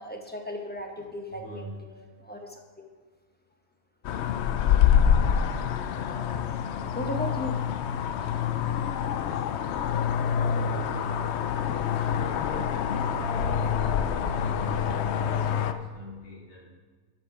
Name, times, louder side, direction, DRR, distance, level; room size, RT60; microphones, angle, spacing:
voice 1, 0.0-1.7 2.0-2.9 6.9-7.6, equal, 10° left, 2 dB, 0.7 m, -36 dB
voice 2, 1.3-1.8 6.3-6.4 9.2-9.4 10.3-11.1 11.5-16.7, equal, 55° left, -3 dB, 2.5 m, -42 dB
sound 1, 4.0-15.7, left 8 dB, 75° left, 0.6 m, -26 dB
13.0 x 5.2 x 4.9 m, 1.4 s
omnidirectional pair, 1.6 m